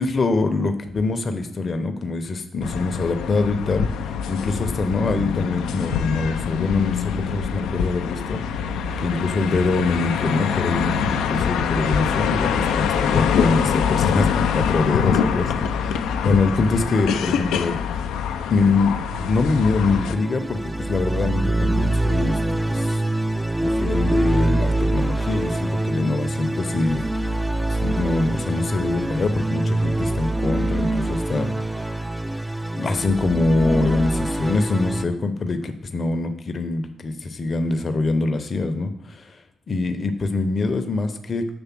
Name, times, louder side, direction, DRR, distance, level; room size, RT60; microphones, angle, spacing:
voice 1, 0.0-8.4 9.0-18.1 18.5-23.0 23.6-27.3 27.7-31.9 32.7-39.4 39.7-41.5, left 3 dB, 50° left, 7 dB, 0.7 m, -24 dB
sound 1, 2.6-20.2, left 7 dB, 80° left, 0.4 m, -24 dB
sound 2, 19.1-35.0, right 1 dB, 10° right, 0.4 m, -24 dB
7.1 x 3.2 x 6.0 m, 0.78 s
hypercardioid pair, 45°, 0 cm